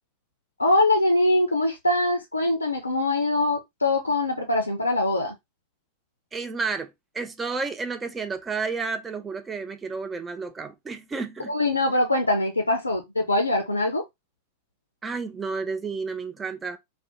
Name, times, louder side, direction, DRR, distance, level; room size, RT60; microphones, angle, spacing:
voice 1, 0.6-5.3 11.5-14.0, left 2 dB, 80° left, 0.4 m, -23 dB
voice 2, 6.3-11.5 15.0-16.8, right 4 dB, 15° right, 0.3 m, -31 dB
2.4 x 2.1 x 2.6 m
figure-of-eight pair, 90°, 0 cm